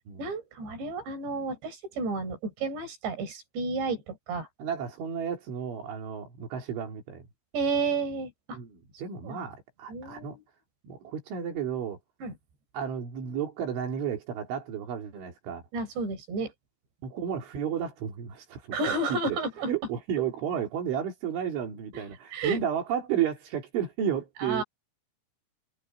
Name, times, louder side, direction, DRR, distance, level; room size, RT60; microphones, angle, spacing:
voice 1, 0.2-4.5 7.5-8.6 9.2-9.4 9.9-10.4 12.2-12.4 15.7-16.5 18.7-19.7 21.9-22.0 22.3-22.6 24.4-24.6, right 3 dB, 70° right, 7.3 m, -31 dB
voice 2, 4.6-7.3 8.5-10.4 10.8-12.0 12.7-15.6 17.0-18.8 19.1-19.4 19.7-24.6, right 8 dB, 85° right, 6.0 m, -32 dB
omnidirectional pair, 5.3 m